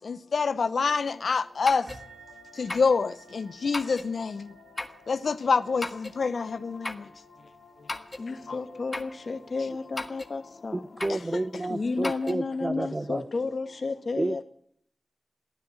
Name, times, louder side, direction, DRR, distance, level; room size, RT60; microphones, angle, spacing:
voice 1, 0.1-1.8 2.6-4.4 5.1-6.9, left 5 dB, 80° left, 0.7 m, -26 dB
sound 1, 1.6-2.0 2.7-2.9 3.7-4.1 4.8-5.0 5.8-6.2 6.8-7.1 7.9-8.3 8.9-9.2 10.0-10.3 11.0-11.3 12.0-12.3, left 2 dB, 30° left, 1.6 m, -35 dB
sound 2, 1.9-10.9, right 2 dB, 80° right, 3.4 m, -55 dB
voice 2, 8.2-10.8 11.7-14.4, left 3 dB, 60° left, 2.1 m, -32 dB
voice 3, 10.7-13.2 14.2-14.4, right 2 dB, 30° right, 0.7 m, -30 dB
15.0 x 13.0 x 7.1 m
wide cardioid pair, 75°, 0 cm